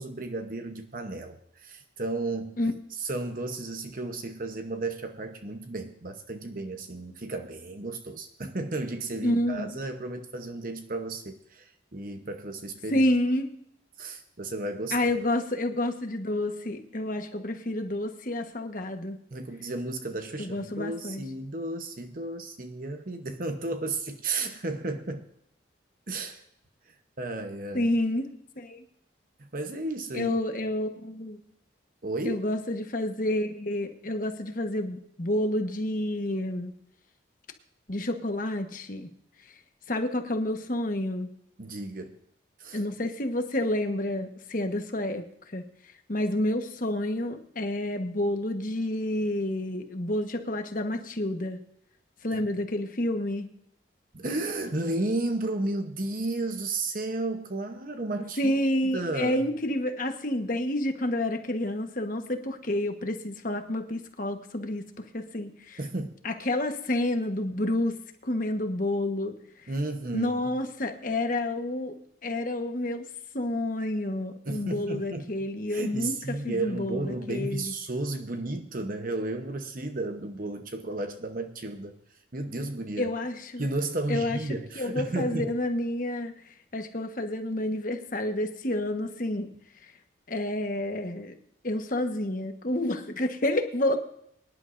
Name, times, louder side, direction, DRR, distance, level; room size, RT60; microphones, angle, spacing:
voice 1, 0.0-2.5 3.0-13.0 14.0-15.0 19.3-25.2 26.1-26.4 27.2-27.9 29.4-30.3 32.0-32.4 41.6-42.2 42.6-42.8 52.3-52.4 54.1-58.6 58.9-59.4 65.8-66.1 69.7-70.3 74.5-75.3 75.7-81.9 82.3-83.1 83.6-85.5, right 2 dB, 45° right, 6 dB, 0.9 m, -33 dB
voice 2, 9.2-9.8 12.9-13.5 14.9-19.2 20.4-21.2 27.7-28.3 28.6-28.8 30.1-31.4 32.2-36.7 37.9-39.1 39.9-41.3 42.7-45.6 46.1-51.6 52.2-53.5 58.4-65.8 66.2-68.0 68.2-69.4 70.1-73.0 73.3-77.7 83.0-83.7 84.1-84.4 84.8-86.3 86.7-89.5 89.8-89.9 90.3-91.3 91.6-94.1, left 1 dB, 45° left, 6 dB, 1.3 m, -29 dB
23.5 x 11.0 x 2.6 m, 0.71 s
head